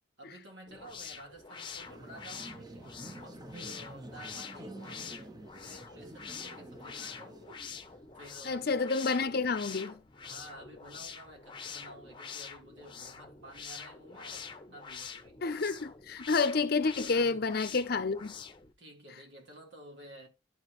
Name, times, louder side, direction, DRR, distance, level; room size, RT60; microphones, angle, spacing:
voice 1, 0.2-8.7 10.2-15.4 17.1-17.5 18.8-20.3, right 1 dB, 70° right, 3.7 m, -52 dB
sound 1, 0.7-18.7, left 6 dB, 25° left, 0.8 m, -46 dB
sound 2, 1.8-8.2, right 1 dB, 20° right, 0.9 m, -49 dB
voice 2, 8.5-10.0 15.4-18.3, left 4 dB, 55° left, 0.6 m, -29 dB
12.5 x 4.9 x 3.1 m
head